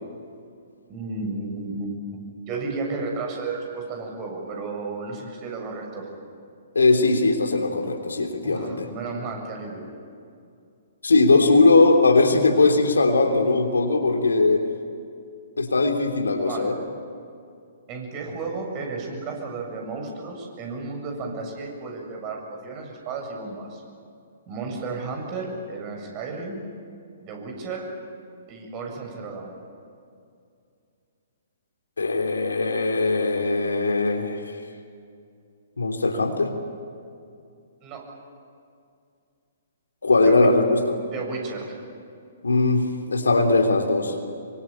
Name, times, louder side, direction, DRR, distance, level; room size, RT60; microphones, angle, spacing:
voice 1, 0.9-6.1 8.3-9.9 16.4-16.7 17.9-23.8 24.5-26.6 27.2-27.9 28.5-29.6 37.8-38.1 40.2-40.5 41.0-41.8, right 3 dB, 30° right, 1 dB, 7.5 m, -33 dB
voice 2, 6.7-8.9 11.0-14.7 15.6-16.7 32.0-34.4 35.8-36.5 40.0-41.0 42.4-44.1, left 3 dB, 75° left, 4 dB, 3.3 m, -20 dB
26.0 x 24.5 x 8.9 m, 2.4 s
figure-of-eight pair, 120°, 0 cm